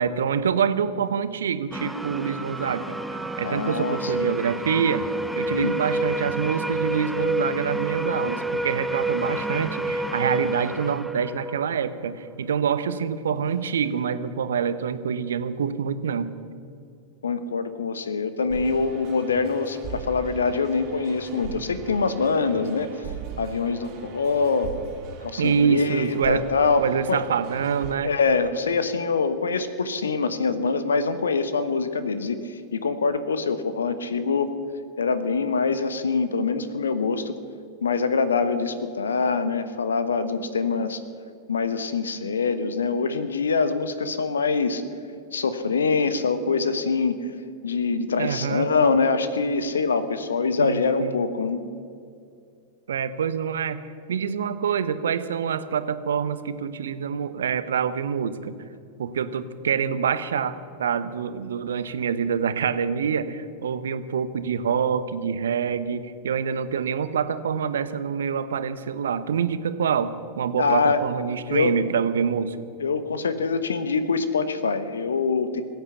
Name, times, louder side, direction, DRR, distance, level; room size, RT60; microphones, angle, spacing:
voice 1, 0.0-3.0 3.4-5.1 5.4-16.3 25.4-26.5 26.8-28.1 48.2-48.7 50.6-51.2 52.9-53.8 54.1-58.5 59.0-72.6, right 7 dB, 65° right, 13 dB, 0.9 m, -26 dB
sound 1, 1.7-12.3, right 1 dB, 5° right, 0.7 m, -29 dB
voice 2, 3.4-4.3 5.5-5.7 17.2-23.1 23.4-24.7 25.2-26.8 27.1-27.2 28.0-34.5 35.0-37.3 37.8-41.0 41.5-44.8 45.3-47.3 47.6-51.6 70.6-71.0 71.5-71.7 72.8-75.6, left 4 dB, 70° left, 11 dB, 1.2 m, -24 dB
sound 2, 18.5-27.9, right 6 dB, 40° right, 2.8 m, -40 dB
21.5 x 9.4 x 7.1 m, 2.4 s
figure-of-eight pair, 90°, 0 cm